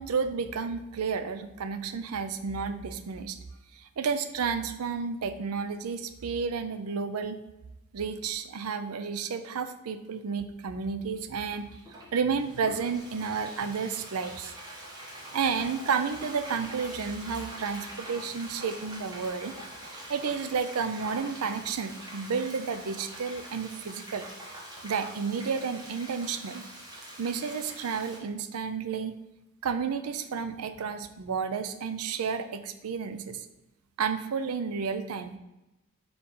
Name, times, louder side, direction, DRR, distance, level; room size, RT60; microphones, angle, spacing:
voice 1, 0.0-3.4 3.7-7.4 7.9-11.7 12.1-14.5 15.3-19.5 19.9-24.2 24.8-26.6 27.2-29.1 29.6-33.5 34.0-35.4, right 5 dB, 85° right, 10 dB, 0.5 m, -31 dB
Frying (food), 11.5-28.2, right 1 dB, 20° right, 1.2 m, -44 dB
4.7 x 3.7 x 5.4 m, 0.97 s
head